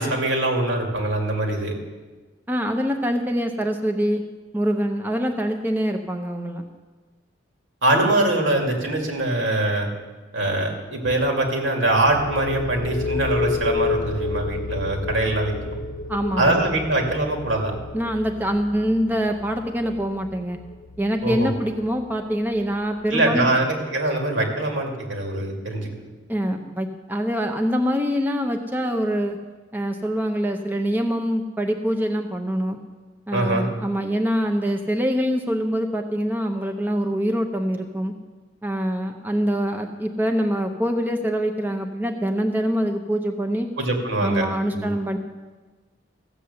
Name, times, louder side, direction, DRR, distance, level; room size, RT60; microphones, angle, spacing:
voice 1, 0.0-1.7 7.8-9.9 10.3-15.8 16.4-17.8 21.2-21.5 23.1-25.9 33.3-33.7 43.8-44.9, right 2 dB, 80° right, 1 dB, 2.5 m, -23 dB
voice 2, 2.5-4.2 4.5-6.6 16.1-16.6 17.9-20.6 21.0-23.5 26.3-29.4 29.7-32.8 33.3-38.1 38.6-43.7 44.2-45.2, equal, 10° right, 4 dB, 0.6 m, -24 dB
sound 1, 11.8-23.4, left 3 dB, 45° left, 0.7 m, -31 dB
14.5 x 8.1 x 6.8 m, 1.3 s
head